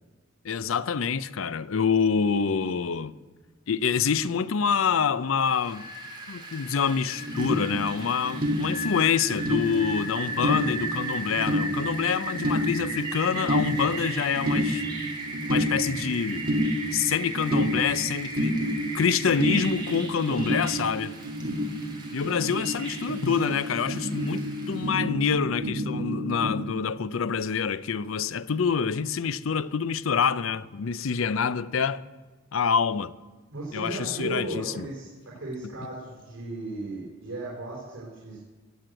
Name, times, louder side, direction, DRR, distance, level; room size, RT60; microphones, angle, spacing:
voice 1, 0.4-3.1 3.7-5.9 6.3-14.8 15.5-16.4 16.9-18.6 18.9-21.2 22.1-32.0 32.5-33.1 33.7-34.8, left 6 dB, 90° left, 0.5 m, -26 dB
Rain, 5.5-24.9, right 2 dB, 25° right, 3.4 m, -37 dB
sound 1, 7.1-26.6, equal, 50° right, 1.7 m, -30 dB
voice 2, 33.5-38.4, right 2 dB, 70° right, 3.9 m, -36 dB
17.5 x 7.8 x 7.8 m
head